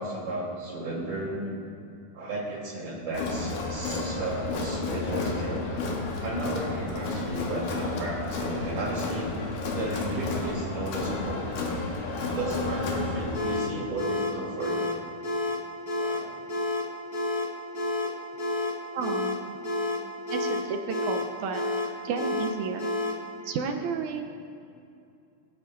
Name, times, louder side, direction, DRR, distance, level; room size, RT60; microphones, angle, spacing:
voice 1, 0.0-1.5 2.1-5.6 6.2-9.3 9.7-11.4 12.3-14.9 16.0-16.3, right 1 dB, 60° right, -5 dB, 4.5 m, -34 dB
Crowd, 3.1-13.4, left 3 dB, 85° left, 3.1 m, -31 dB
sound 1, 13.3-23.3, left 2 dB, 45° left, 1.1 m, -30 dB
voice 2, 18.9-19.6 20.3-21.6 22.0-22.9 23.4-24.3, right 5 dB, 75° right, 5 dB, 1.9 m, -32 dB
24.5 x 9.3 x 2.5 m, 2.5 s
omnidirectional pair, 4.0 m